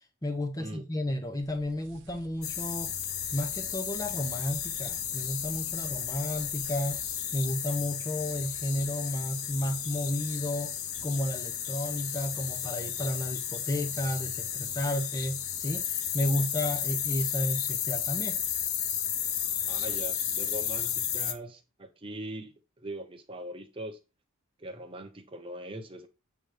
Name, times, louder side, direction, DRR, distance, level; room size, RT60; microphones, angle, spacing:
voice 1, 0.2-2.9 3.3-7.0 7.3-10.7 11.0-18.4, left 1 dB, 15° left, 0.9 m, -32 dB
sound 1, 1.4-7.2, right 2 dB, 60° right, 0.8 m, -54 dB
sound 2, 2.4-21.3, left 9 dB, 75° left, 0.8 m, -33 dB
voice 2, 19.7-24.0 24.6-26.1, right 1 dB, 25° right, 1.0 m, -41 dB
7.7 x 3.2 x 5.0 m
head